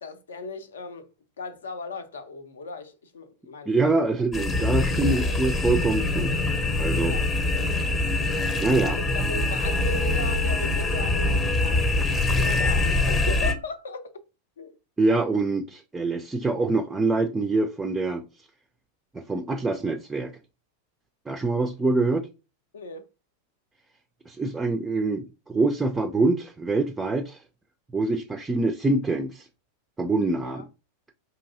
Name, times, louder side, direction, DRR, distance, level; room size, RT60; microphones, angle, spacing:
voice 1, 0.0-1.1 1.4-4.1 7.1-7.3 8.7-14.2 14.6-14.8 15.3-15.4 22.7-23.1 30.4-30.7, left 3 dB, 65° left, 0.5 m, -37 dB
voice 2, 3.7-6.3 6.8-7.1 8.6-9.0 15.0-18.2 19.1-20.3 21.3-22.3 24.3-27.4 27.9-29.5 30.0-30.6, right 3 dB, 10° right, 0.3 m, -25 dB
sound 1, 4.3-13.5, left 2 dB, 25° left, 0.7 m, -24 dB
4.5 x 2.7 x 2.6 m
figure-of-eight pair, 90°, 0 cm